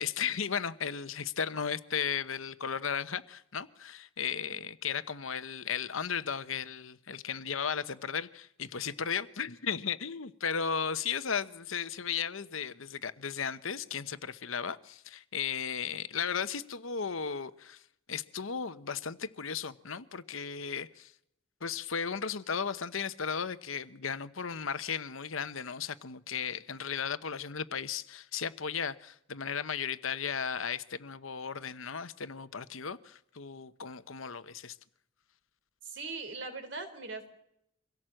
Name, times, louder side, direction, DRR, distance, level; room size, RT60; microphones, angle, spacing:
voice 1, 0.0-17.8 18.1-21.1 21.6-34.8, left 7 dB, 75° left, 1.0 m, -35 dB
voice 2, 35.8-37.3, right 3 dB, 60° right, 3.6 m, -40 dB
24.5 x 17.0 x 7.8 m
head